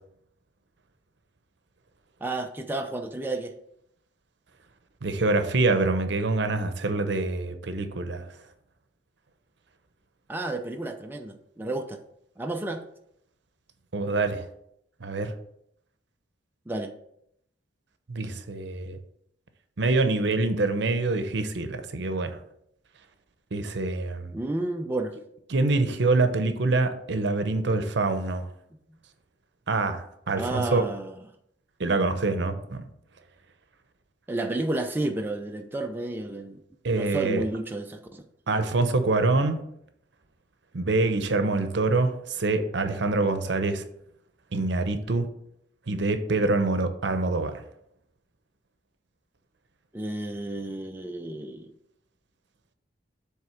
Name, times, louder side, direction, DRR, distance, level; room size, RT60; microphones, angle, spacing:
voice 1, 2.2-3.5 10.3-12.0 12.4-12.8 16.7-16.9 24.3-25.1 30.4-31.1 34.3-36.6 36.9-38.2 49.9-51.7, right 2 dB, 10° right, 4 dB, 0.4 m, -31 dB
voice 2, 5.0-8.3 13.9-14.4 15.0-15.3 18.1-19.0 19.8-22.4 23.5-24.3 25.5-28.5 29.7-30.8 31.8-32.9 36.8-37.4 38.5-39.6 40.7-43.8 44.5-45.3 45.9-47.6, right 3 dB, 70° right, 8 dB, 0.7 m, -25 dB
7.6 x 3.5 x 4.9 m, 0.73 s
head